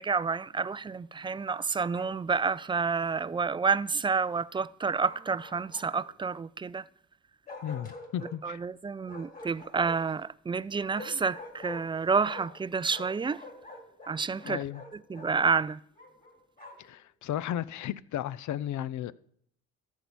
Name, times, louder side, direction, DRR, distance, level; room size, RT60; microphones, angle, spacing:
voice 1, 0.0-6.9 8.4-13.4 14.1-14.7 14.9-15.8, right 5 dB, 15° right, 0.3 m, -29 dB
Bark, 1.9-2.6 5.0-6.1 7.5-8.4 9.1-10.2 10.9-12.6 12.9-15.3 16.0-16.9, left 2 dB, 25° left, 3.2 m, -47 dB
voice 2, 7.6-8.6 14.5-14.8 16.8-19.1, left 11 dB, 60° left, 0.5 m, -34 dB
13.5 x 4.6 x 7.0 m
supercardioid pair, 55°, 33 cm